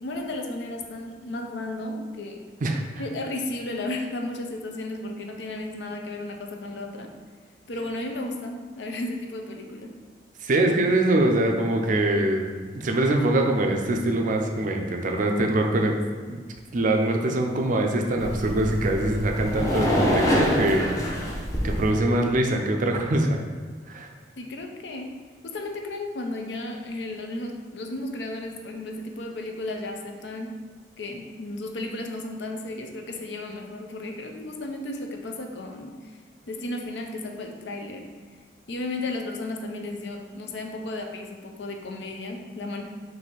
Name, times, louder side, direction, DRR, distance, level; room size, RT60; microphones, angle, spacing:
voice 1, 0.0-2.4 3.0-7.1 7.7-9.9 24.4-25.1 25.4-30.6 31.0-35.9 36.5-38.1 38.7-42.8, left 2 dB, 70° left, 3 dB, 0.5 m, -34 dB
voice 2, 10.4-16.0 16.3-16.4 16.7-21.3 21.6-23.4 23.9-24.1, right 1 dB, 45° right, 3 dB, 0.4 m, -23 dB
sound 1, 18.2-21.9, equal, 20° left, 0.7 m, -25 dB
4.1 x 2.7 x 3.9 m, 1.5 s
head